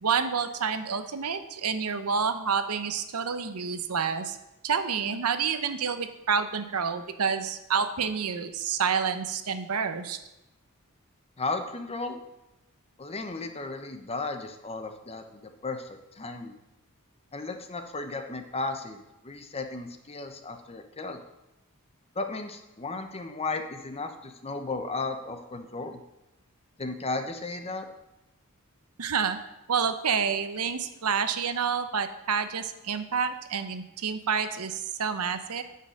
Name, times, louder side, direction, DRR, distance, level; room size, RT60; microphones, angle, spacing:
voice 1, 0.0-4.4 4.6-10.2 29.0-29.4 29.7-35.6, right 6 dB, 90° right, 10 dB, 0.8 m, -28 dB
voice 2, 11.4-12.2 13.0-16.6 17.3-21.2 22.1-26.0 26.8-27.9, left 3 dB, 30° left, 7 dB, 0.8 m, -35 dB
9.2 x 5.6 x 6.5 m, 0.93 s
head